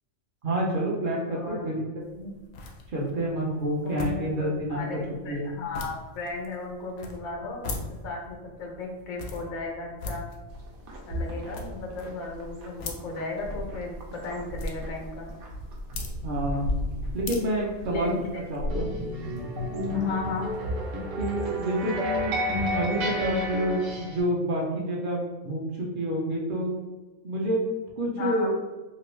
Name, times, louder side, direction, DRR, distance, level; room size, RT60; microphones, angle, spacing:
voice 1, 0.4-1.8 2.1-2.3 2.9-4.8 5.3-5.5 16.2-16.7 17.1-18.1 18.5-18.9 21.2-22.3 22.7-26.7 27.2-27.6 28.0-28.5, right 1 dB, 50° right, -3 dB, 0.6 m, -28 dB
voice 2, 1.3-1.7 3.8-7.7 8.0-10.2 11.1-15.3 17.9-18.4 19.9-20.5 28.1-28.5, left 3 dB, 90° left, 0 dB, 1.1 m, -35 dB
sound 1, 2.0-18.5, left 3 dB, 65° left, 0.7 m, -43 dB
sound 2, 10.5-23.4, equal, 90° right, 1.2 m, -37 dB
sound 3, 18.7-24.2, left 1 dB, 70° right, 1.1 m, -30 dB
3.0 x 2.5 x 3.1 m, 1.2 s
omnidirectional pair, 1.4 m